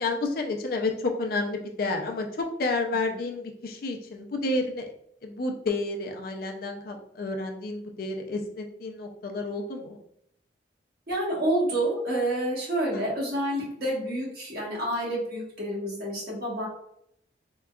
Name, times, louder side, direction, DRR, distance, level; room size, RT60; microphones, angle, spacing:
voice 1, 0.0-4.9 5.2-10.0 12.9-13.1, left 2 dB, 55° left, 3 dB, 0.4 m, -30 dB
voice 2, 11.1-16.7, right 1 dB, 55° right, -4 dB, 1.2 m, -28 dB
3.7 x 2.3 x 2.3 m, 0.72 s
head